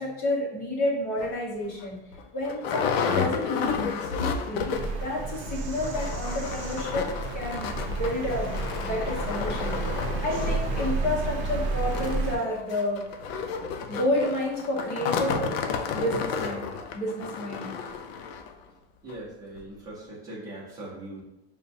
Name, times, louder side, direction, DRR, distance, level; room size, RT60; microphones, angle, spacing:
voice 1, 0.0-2.0 2.3-3.8 4.1-7.0 7.3-8.5 8.8-13.0 13.9-15.4 15.9-17.7, left 1 dB, 25° left, -4 dB, 1.0 m, -30 dB
sound 1, 1.2-1.3 1.8-1.9 2.1-5.1 5.3-5.4 5.7-18.5 19.1-19.2 19.6-19.7, left 6 dB, 65° left, 0.6 m, -32 dB
Bird vocalization bird call bird song, 4.7-12.3, right 3 dB, 45° right, 0.6 m, -31 dB
voice 2, 19.0-21.2, right 1 dB, 10° right, -6 dB, 0.8 m, -40 dB
6.6 x 2.3 x 2.6 m, 0.94 s
supercardioid pair, 180°, 33 cm